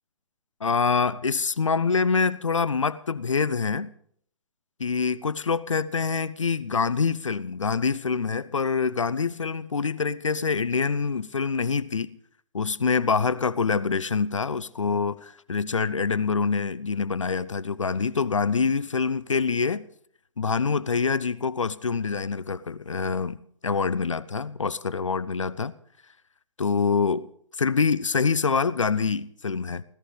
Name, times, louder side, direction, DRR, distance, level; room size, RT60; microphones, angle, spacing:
voice 1, 0.6-3.9 4.8-12.2 12.5-19.8 20.4-25.7 26.6-27.3 27.6-29.8, left 5 dB, 70° left, 0.7 m, -25 dB
16.0 x 14.5 x 5.1 m
figure-of-eight pair, 125°, 16 cm